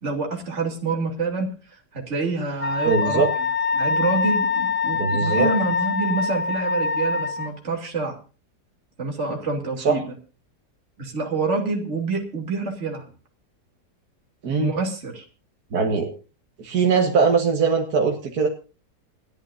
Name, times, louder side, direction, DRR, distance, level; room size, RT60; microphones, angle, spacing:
voice 1, 0.0-1.5 1.9-3.2 3.7-8.2 9.0-10.0 11.0-13.1 14.6-15.2, right 3 dB, 45° right, 1 dB, 3.2 m, -27 dB
Wind instrument woodwind instrument, 2.6-7.5, left 4 dB, 20° left, 1.3 m, -24 dB
voice 2, 2.9-3.3 4.9-5.5 9.8-10.0 14.4-14.7 15.7-16.1 16.6-18.5, right 5 dB, 65° right, 2 dB, 2.1 m, -21 dB
29.0 x 10.5 x 2.6 m, 0.34 s
omnidirectional pair, 1.8 m